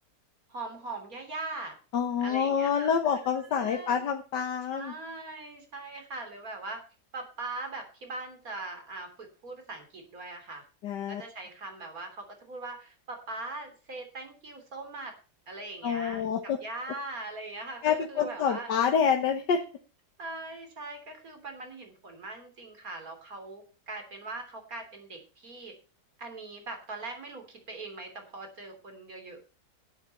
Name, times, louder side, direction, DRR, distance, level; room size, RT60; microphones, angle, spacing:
voice 1, 0.5-1.7 2.2-3.0 3.5-4.0 4.7-6.8 7.1-10.6 11.1-15.2 15.5-18.7 20.2-25.7 26.2-29.4, right 2 dB, 55° right, 5 dB, 3.6 m, -41 dB
voice 2, 1.9-4.9 10.8-11.2 15.8-16.6 17.8-19.6, left 7 dB, 90° left, 4 dB, 1.8 m, -27 dB
12.5 x 11.0 x 4.3 m, 0.35 s
omnidirectional pair, 1.8 m